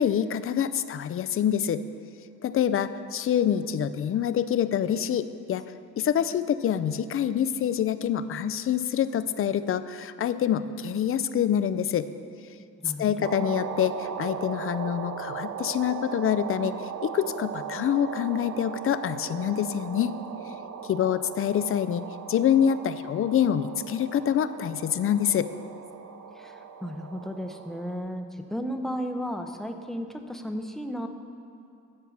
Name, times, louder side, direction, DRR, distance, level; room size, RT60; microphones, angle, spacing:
voice 1, 0.0-1.8 2.4-5.6 6.0-12.1 13.0-16.7 17.0-20.1 20.9-22.0 22.3-25.5, left 9 dB, 45° left, 13 dB, 0.5 m, -26 dB
voice 2, 12.8-13.3 26.3-31.1, equal, ahead, 5 dB, 0.8 m, -34 dB
sound 1, 13.2-28.0, right 7 dB, 65° right, 0.6 m, -38 dB
11.0 x 4.6 x 7.1 m, 2.7 s
cardioid pair, 90°, 30 cm